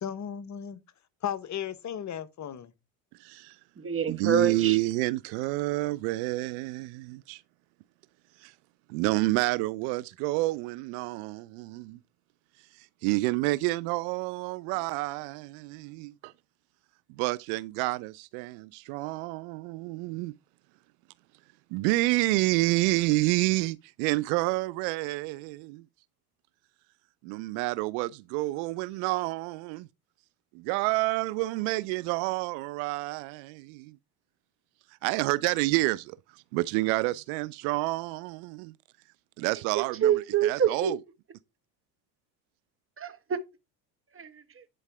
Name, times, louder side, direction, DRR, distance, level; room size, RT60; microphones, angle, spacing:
voice 1, 0.0-0.8 1.2-2.7, left 9 dB, 35° left, 1.0 m, -35 dB
voice 2, 3.2-3.6 4.1-7.4 8.4-8.5 8.9-12.0 12.8-16.3 17.1-20.3 21.7-25.8 27.2-29.9 30.5-34.0 35.0-38.7 39.4-41.0, right 21 dB, 65° right, 0.6 m, -29 dB
voice 3, 3.8-4.8 39.7-40.9 43.0-43.4 44.1-44.6, right 8 dB, 25° right, 1.4 m, -27 dB
10.0 x 4.7 x 3.4 m
hypercardioid pair, 75°, 49 cm